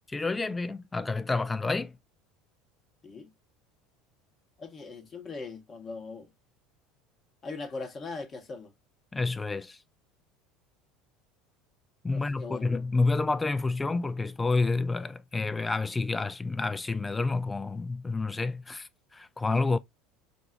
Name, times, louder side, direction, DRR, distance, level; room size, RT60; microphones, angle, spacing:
voice 1, 0.1-1.9 9.1-9.8 12.0-19.8, left 3 dB, 15° left, 0.3 m, -29 dB
voice 2, 4.6-6.3 7.4-8.7 12.1-12.7, left 3 dB, 35° left, 0.8 m, -40 dB
5.2 x 2.0 x 2.6 m
figure-of-eight pair, 70°, 0 cm